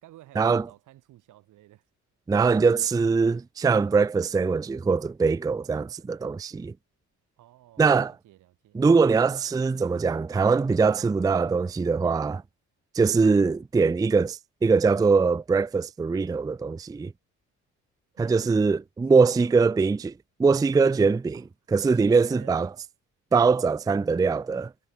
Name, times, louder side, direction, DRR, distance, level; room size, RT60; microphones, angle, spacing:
voice 1, 0.0-1.9 7.4-8.8 18.2-18.8 19.3-19.7 20.8-20.9 21.3-21.5 21.9-22.7, right 15 dB, 85° right, 3.8 m, -51 dB
voice 2, 2.3-6.7 7.8-8.1 8.7-12.4 12.9-17.1 18.2-20.1 20.4-21.4 21.7-22.7 23.3-24.7, right 4 dB, 15° right, 0.4 m, -22 dB
cardioid pair, 90°, 30 cm